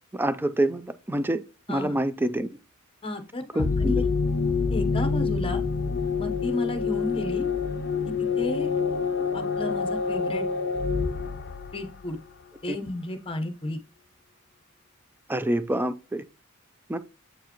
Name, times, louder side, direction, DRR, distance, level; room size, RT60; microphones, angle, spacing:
voice 1, 0.1-1.4 1.7-2.5 3.5-4.0 15.3-16.2 16.9-17.0, right 1 dB, 10° right, 0.4 m, -26 dB
voice 2, 3.0-4.0 4.7-5.6 6.2-7.5 8.0-8.7 9.3-10.5 11.7-12.2 12.6-13.8, left 1 dB, 25° left, 0.9 m, -33 dB
sound 1, 3.6-12.2, left 5 dB, 50° left, 0.5 m, -27 dB
8.0 x 4.7 x 3.0 m
head